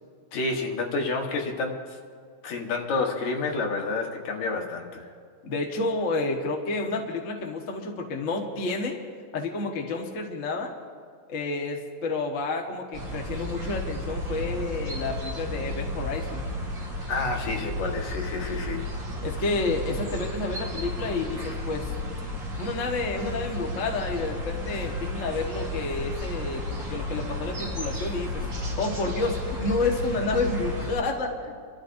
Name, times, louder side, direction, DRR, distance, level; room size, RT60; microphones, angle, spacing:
voice 1, 0.3-2.0 2.4-5.1 17.1-18.8, left 3 dB, 70° left, 1 dB, 2.7 m, -29 dB
voice 2, 5.4-9.0 9.3-10.7 11.3-16.5 19.2-21.9 22.6-31.5, left 3 dB, 50° left, 1 dB, 0.9 m, -30 dB
sound 1, 12.9-31.0, left 1 dB, 30° right, 1.8 m, -33 dB
28.0 x 13.0 x 2.6 m, 2.1 s
omnidirectional pair, 3.4 m